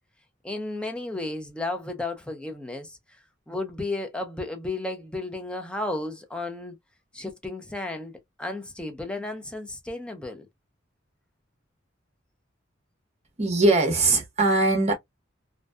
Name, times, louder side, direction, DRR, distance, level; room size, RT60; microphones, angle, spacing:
voice 1, 0.4-3.0 3.5-6.8 7.1-8.1 8.4-10.5, left 2 dB, 5° left, 0.4 m, -33 dB
voice 2, 13.4-14.9, right 2 dB, 35° right, 0.8 m, -21 dB
2.6 x 2.1 x 2.2 m
head